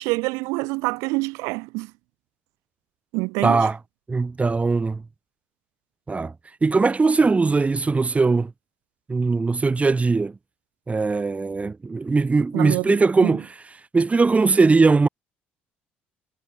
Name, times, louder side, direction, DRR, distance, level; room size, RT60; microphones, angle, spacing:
voice 1, 0.0-1.9 3.1-3.6 12.5-13.0 13.2-13.3, right 26 dB, 65° right, 1.2 m, -26 dB
voice 2, 3.4-3.8 4.1-5.0 6.1-6.3 6.6-8.5 9.1-10.4 10.9-13.5 13.9-15.1, right 4 dB, 25° right, 2.1 m, -20 dB
figure-of-eight pair, 50°, 6 cm